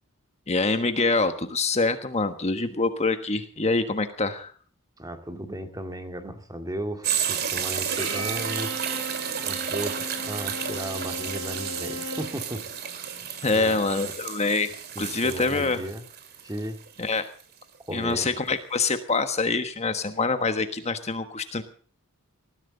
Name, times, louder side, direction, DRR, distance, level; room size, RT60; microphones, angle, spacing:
voice 1, 0.5-4.5 13.4-14.7 15.0-15.8 17.0-17.3 17.9-21.6, left 3 dB, 30° left, 8 dB, 1.4 m, -25 dB
voice 2, 5.0-8.7 9.4-12.6 13.0-13.1 13.5-14.1 15.0-16.0 16.4-16.8 17.9-18.3, right 1 dB, 15° right, 6 dB, 2.2 m, -35 dB
sound 1, 7.0-17.6 18.1-18.2, right 8 dB, 50° right, 2.5 m, -32 dB
Bowed string instrument, 7.9-12.4, right 1 dB, 85° right, 7.5 m, -36 dB
20.0 x 15.0 x 4.0 m, 0.43 s
head